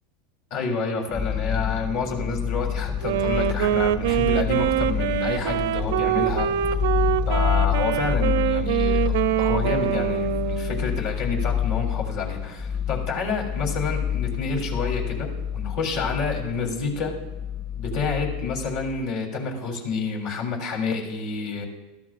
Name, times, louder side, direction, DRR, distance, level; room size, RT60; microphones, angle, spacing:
voice 1, 0.5-6.5 7.3-17.1 17.8-21.7, left 4 dB, 50° left, 1 dB, 3.6 m, -29 dB
sound 1, 1.1-19.0, left 8 dB, 30° left, 1.7 m, -28 dB
Wind instrument woodwind instrument, 3.0-11.0, right 11 dB, 80° right, 0.6 m, -24 dB
21.5 x 14.0 x 2.6 m, 1.1 s
supercardioid pair, 150°, 0 cm